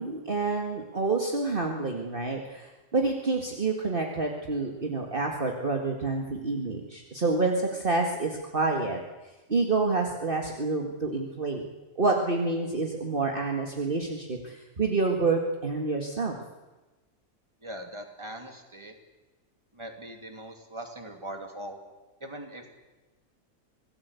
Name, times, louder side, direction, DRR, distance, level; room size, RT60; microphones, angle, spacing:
voice 1, 0.0-9.0 9.5-11.7 12.0-16.4, right 3 dB, 35° right, 1 dB, 2.1 m, -28 dB
voice 2, 17.6-19.0 19.7-21.8 22.2-22.7, right 1 dB, 20° right, 4 dB, 2.8 m, -41 dB
26.0 x 18.0 x 8.3 m, 1.2 s
omnidirectional pair, 1.5 m